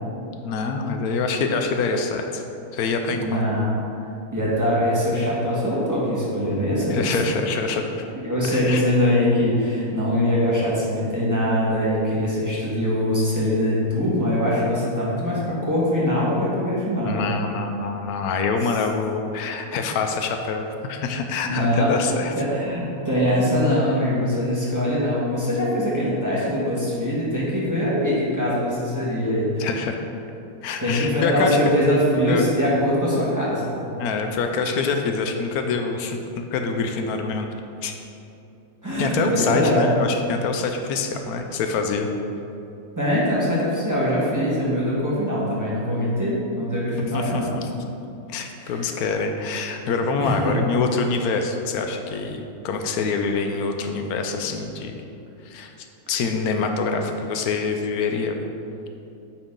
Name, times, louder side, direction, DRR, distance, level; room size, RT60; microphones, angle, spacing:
voice 1, 0.4-2.4 2.7-3.5 6.9-8.0 8.5-8.9 17.0-22.3 29.6-29.9 30.6-31.6 32.3-32.5 34.0-37.5 37.8-37.9 39.0-42.1 47.1-47.8 48.3-54.9 55.4-55.7 56.1-58.3, left 4 dB, 80° left, 5 dB, 1.1 m, -25 dB
voice 2, 3.1-3.7 4.3-7.2 8.1-17.3 21.4-21.9 22.4-29.7 30.8-33.8 38.8-39.9 43.0-47.5 48.6-48.8 50.2-50.6, equal, 15° right, -8 dB, 1.4 m, -22 dB
8.6 x 4.7 x 3.7 m, 2.7 s
omnidirectional pair, 1.6 m